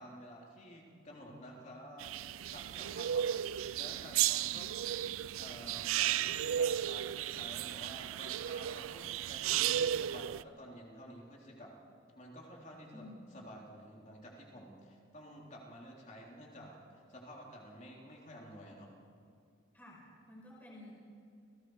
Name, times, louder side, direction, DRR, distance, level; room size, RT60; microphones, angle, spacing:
voice 1, 0.0-2.1 2.5-4.7 5.4-11.7 12.1-18.9, equal, 35° left, -2 dB, 3.6 m, -51 dB
sound 1, 2.0-10.4, right 10 dB, 80° right, 0.4 m, -34 dB
voice 2, 12.9-13.3 19.7-20.9, left 1 dB, 10° left, -5 dB, 5.3 m, -52 dB
29.5 x 18.5 x 4.9 m, 2.4 s
head